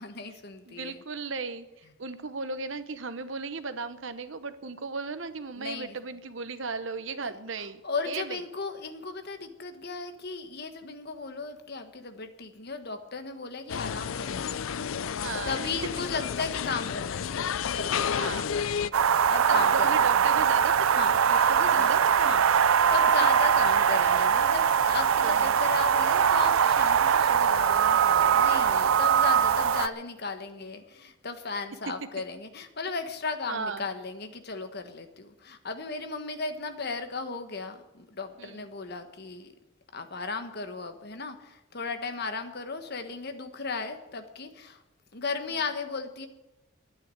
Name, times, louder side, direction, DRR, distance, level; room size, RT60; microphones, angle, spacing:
voice 1, 0.0-1.0 5.6-6.0 7.2-7.3 7.6-20.0 20.8-22.6 22.9-39.5 39.9-44.8 45.1-46.3, left 4 dB, 50° left, 7 dB, 1.4 m, -36 dB
voice 2, 0.7-1.7 2.0-7.8 8.1-8.4 15.2-15.7 18.2-18.5 19.5-22.6 25.2-25.6 28.7-29.0 33.5-33.9 38.4-38.7 45.5-45.6, right 4 dB, 65° right, 11 dB, 1.0 m, -36 dB
sound 1, 13.7-18.9, left 7 dB, 75° left, 0.4 m, -31 dB
sound 2, 18.9-29.9, right 7 dB, 85° right, 0.5 m, -22 dB
12.0 x 9.6 x 9.2 m, 1.0 s
head